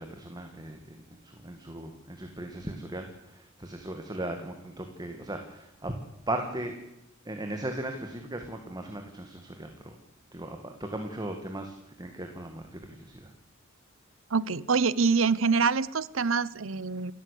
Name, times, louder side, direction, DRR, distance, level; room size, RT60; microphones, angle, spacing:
voice 1, 0.0-6.0 6.3-6.7 7.2-10.0 10.3-13.3, right 1 dB, 20° right, 4 dB, 2.1 m, -37 dB
voice 2, 14.3-17.1, right 5 dB, 80° right, 20 dB, 0.8 m, -25 dB
29.5 x 13.5 x 8.5 m, 0.87 s
head